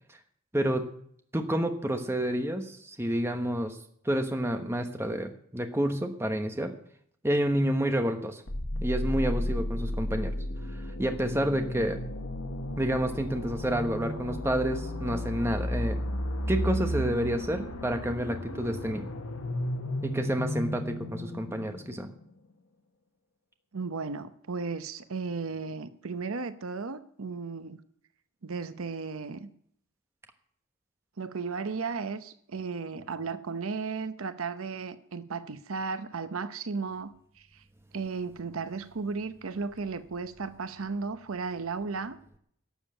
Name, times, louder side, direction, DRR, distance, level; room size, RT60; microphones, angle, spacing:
voice 1, 0.5-0.9 1.3-6.7 7.2-8.4 8.8-12.0 12.8-16.0 16.5-19.1 20.0-22.1, equal, 10° right, 6 dB, 1.1 m, -29 dB
sound 1, 8.5-22.2, equal, 90° left, 1.3 m, -33 dB
voice 2, 23.7-27.8 28.4-29.5 31.2-37.1 37.9-42.2, right 4 dB, 80° right, 12 dB, 0.8 m, -35 dB
12.5 x 7.2 x 8.8 m, 0.65 s
head